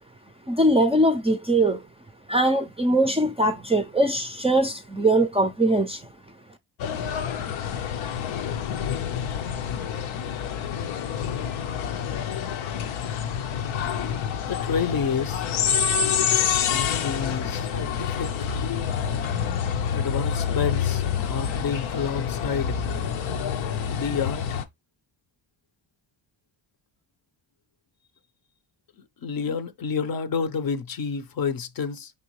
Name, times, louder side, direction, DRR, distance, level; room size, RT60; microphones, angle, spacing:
voice 1, 0.5-1.8 2.3-6.1, right 1 dB, 15° right, 0.4 m, -21 dB
sound 1, 6.8-24.6, left 8 dB, 85° left, 0.7 m, -27 dB
voice 2, 14.5-15.5 16.7-18.3 19.9-22.8 23.9-24.6 29.2-32.1, left 6 dB, 50° left, 0.7 m, -29 dB
5.3 x 3.3 x 3.0 m
cardioid pair, 90°, 46 cm